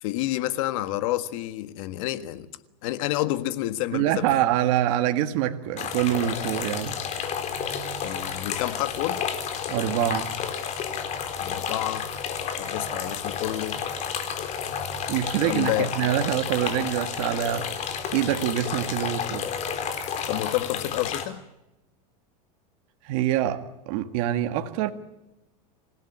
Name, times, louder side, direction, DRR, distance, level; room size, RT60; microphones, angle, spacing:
voice 1, 0.0-2.5 2.8-4.3 8.0-9.2 11.4-12.1 12.6-13.8 15.4-15.9 20.3-21.4, left 15 dB, 65° left, 1.6 m, -29 dB
voice 2, 3.9-6.9 9.7-10.3 15.1-17.7 18.1-19.5 23.0-24.9, right 12 dB, 60° right, 1.9 m, -25 dB
sound 1, 5.8-21.2, left 7 dB, 40° left, 4.1 m, -31 dB
27.0 x 16.5 x 9.9 m
supercardioid pair, 135°, 19 cm